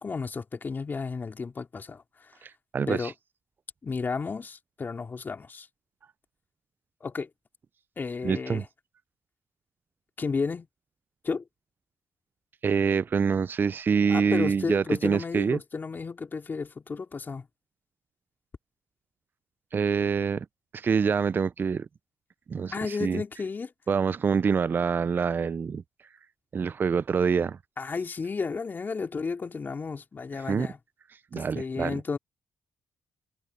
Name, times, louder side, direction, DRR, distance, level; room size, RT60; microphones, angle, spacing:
voice 1, 0.0-2.0 2.9-3.1 3.8-5.7 7.0-7.3 8.0-8.7 10.2-10.7 11.2-11.4 14.1-17.5 22.7-23.7 27.8-30.8 31.3-32.2, left 4 dB, 40° left, 3.0 m, -32 dB
voice 2, 2.4-3.1 8.2-8.6 12.6-15.6 19.7-20.5 20.7-21.9 22.5-23.2 23.9-25.8 26.5-27.6 30.5-30.7 31.3-32.0, right 6 dB, 45° right, 0.4 m, -26 dB
supercardioid pair, 55°, 5 cm